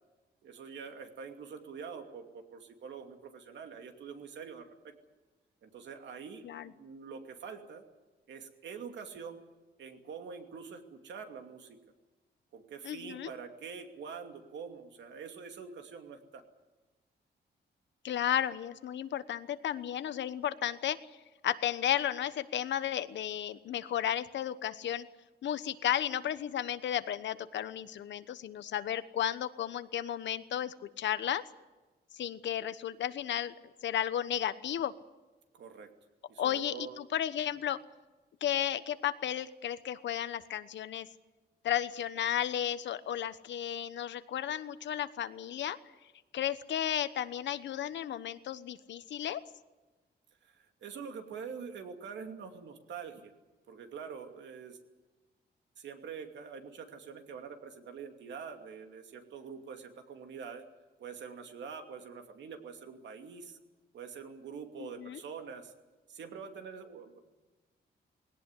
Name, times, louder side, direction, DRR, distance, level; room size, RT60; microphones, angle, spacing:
voice 1, 0.4-4.9 5.6-7.8 8.3-9.4 9.8-11.8 12.5-16.4 35.5-35.9 36.3-37.0 50.4-53.3 53.7-54.8 55.8-60.6 61.0-63.6 63.9-65.7 66.1-67.2, right 6 dB, 90° right, 5 dB, 2.6 m, -45 dB
voice 2, 12.8-13.3 18.0-21.0 21.4-25.1 25.4-31.4 32.1-33.5 33.8-34.9 36.4-37.8 38.4-41.1 41.6-45.8 46.3-49.4 64.8-65.2, left 10 dB, 90° left, 13 dB, 1.1 m, -33 dB
20.0 x 18.0 x 9.8 m, 1.2 s
wide cardioid pair, 170°, 18 cm